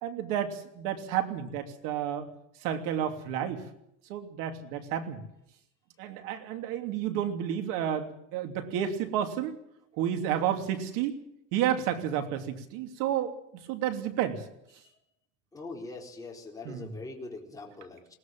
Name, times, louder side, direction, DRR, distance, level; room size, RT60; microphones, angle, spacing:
voice 1, 0.0-2.3 2.6-3.6 4.1-5.2 6.0-9.6 9.9-11.2 11.5-13.3 13.7-14.4 16.6-16.9, right 10 dB, 65° right, 6 dB, 3.1 m, -31 dB
voice 2, 15.5-18.2, left 3 dB, 10° left, -1 dB, 4.1 m, -42 dB
21.5 x 18.0 x 7.6 m, 0.78 s
cardioid pair, 160°, 35 cm